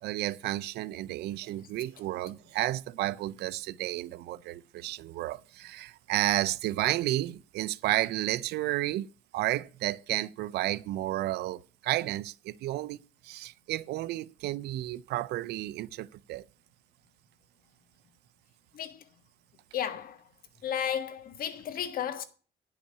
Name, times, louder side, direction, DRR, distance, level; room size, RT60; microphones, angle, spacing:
voice 1, 0.0-13.0 13.2-16.4, right 15 dB, 75° right, 0.6 m, -32 dB
voice 2, 19.7-20.2 20.6-22.2, left 9 dB, 60° left, 1.5 m, -33 dB
10.5 x 5.8 x 8.4 m
cardioid pair, 110°, 17 cm